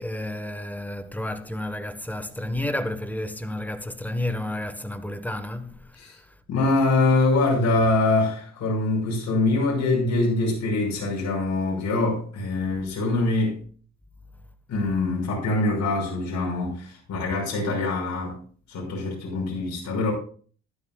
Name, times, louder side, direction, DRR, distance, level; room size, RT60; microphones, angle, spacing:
voice 1, 0.0-6.2, left 1 dB, 5° left, 1.2 m, -31 dB
voice 2, 6.5-13.6 14.7-18.4 18.7-20.1, left 2 dB, 65° left, 5.8 m, -24 dB
14.0 x 12.0 x 2.3 m
cardioid pair, 90°, 30 cm